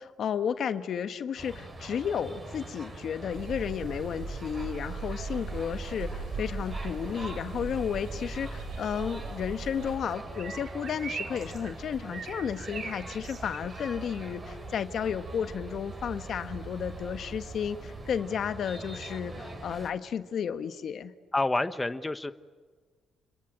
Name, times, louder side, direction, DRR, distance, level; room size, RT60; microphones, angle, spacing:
voice 1, 0.0-21.1, left 8 dB, 60° left, 9 dB, 1.4 m, -33 dB
sound 1, 1.4-19.9, right 2 dB, 30° right, 7.0 m, -43 dB
sound 2, 3.3-10.0, right 3 dB, 85° right, 6.5 m, -39 dB
sound 3, 6.3-18.2, right 4 dB, 50° right, 4.0 m, -44 dB
voice 2, 21.3-22.3, left 2 dB, 15° left, 10 dB, 1.1 m, -28 dB
29.5 x 22.5 x 8.9 m, 1.5 s
cardioid pair, 90°, 0 cm